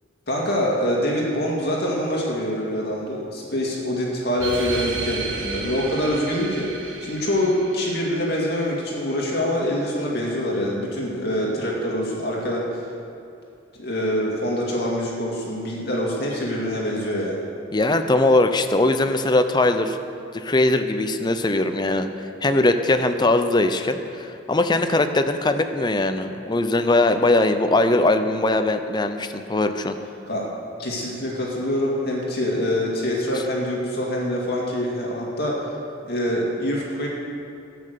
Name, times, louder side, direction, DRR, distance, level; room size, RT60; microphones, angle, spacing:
voice 1, 0.3-12.9 13.8-17.4 30.3-30.5 30.8-35.8 36.0-37.1, equal, 55° left, -3 dB, 2.3 m, -25 dB
sound 1, 4.4-9.4, right 4 dB, 75° right, 1.5 m, -34 dB
voice 2, 17.7-20.0 20.3-22.1 22.4-29.9, left 2 dB, 20° left, 8 dB, 0.6 m, -20 dB
12.5 x 8.6 x 6.6 m, 2.6 s
head